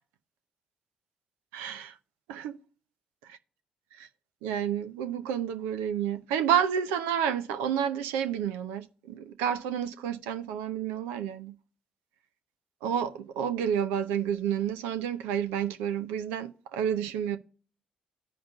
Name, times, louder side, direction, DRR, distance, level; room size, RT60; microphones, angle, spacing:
voice 1, 1.5-1.9 2.3-2.6 3.3-3.4 4.4-11.5 12.8-17.4, right 9 dB, 80° right, 0.6 m, -30 dB
15.0 x 5.1 x 2.3 m
hypercardioid pair, 45°, 3 cm